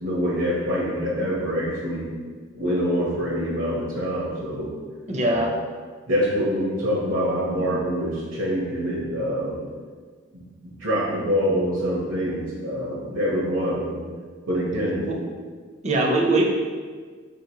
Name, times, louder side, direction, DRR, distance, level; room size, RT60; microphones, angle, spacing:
voice 1, 0.0-2.1 2.5-4.7 5.2-5.5 6.1-9.6 10.8-14.0 14.5-15.1, equal, 75° right, -5 dB, 0.8 m, -25 dB
voice 2, 5.1-5.5 15.1-15.2 15.8-16.4, right 2 dB, 35° right, 1 dB, 0.5 m, -21 dB
4.9 x 2.8 x 2.7 m, 1.5 s
head